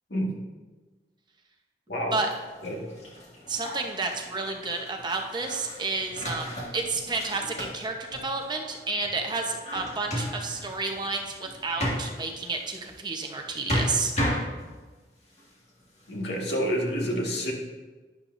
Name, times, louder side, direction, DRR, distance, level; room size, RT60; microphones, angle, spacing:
sound 1, 2.1-13.1 13.4-14.8 15.4-16.1, equal, 40° left, 1.8 m, -35 dB
voice 1, 3.5-14.1, right 3 dB, 25° right, 2 dB, 0.9 m, -31 dB
voice 2, 16.1-17.5, equal, 70° left, 0 dB, 1.8 m, -28 dB
11.5 x 10.5 x 2.6 m, 1.3 s
head